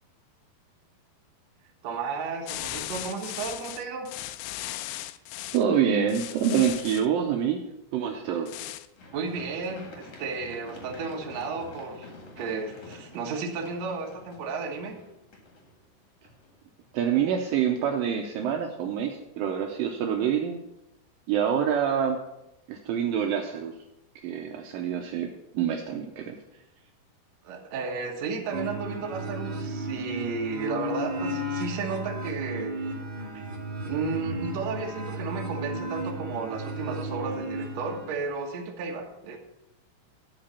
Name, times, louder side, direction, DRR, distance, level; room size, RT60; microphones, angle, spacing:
voice 1, 1.8-4.1 8.3-8.4 9.1-15.0 27.4-32.8 33.3-33.4 33.8-39.4, right 4 dB, 60° right, 2 dB, 2.0 m, -33 dB
sound 1, 2.5-5.6 6.1-7.1 8.5-8.9, left 14 dB, 80° left, 2.4 m, -37 dB
voice 2, 5.5-7.6 7.9-8.5 16.9-20.6 21.3-22.2 22.7-23.7 24.2-25.3 25.5-26.4, right 8 dB, 80° right, 3 dB, 2.2 m, -26 dB
Run, 9.0-16.9 17.3-17.4, left 2 dB, 45° left, 2.3 m, -48 dB
sound 2, 28.5-38.2, right 1 dB, 40° right, 2.3 m, -34 dB
12.0 x 5.1 x 6.8 m, 0.91 s
omnidirectional pair, 4.6 m